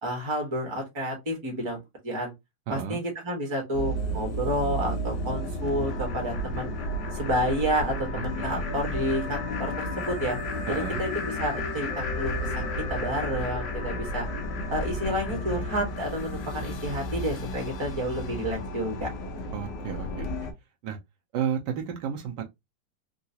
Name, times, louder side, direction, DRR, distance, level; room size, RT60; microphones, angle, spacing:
voice 1, 0.0-2.3 2.7-6.7 7.1-10.4 10.7-14.3 14.7-19.1, equal, 20° right, 0.8 m, -30 dB
voice 2, 2.7-3.0 8.4-8.7 10.7-11.0 19.5-20.3 20.8-21.0 21.3-22.5, right 8 dB, 75° right, 1.2 m, -32 dB
sound 1, 3.7-20.5, left 1 dB, 70° left, 1.3 m, -32 dB
3.7 x 2.3 x 2.7 m
omnidirectional pair, 2.0 m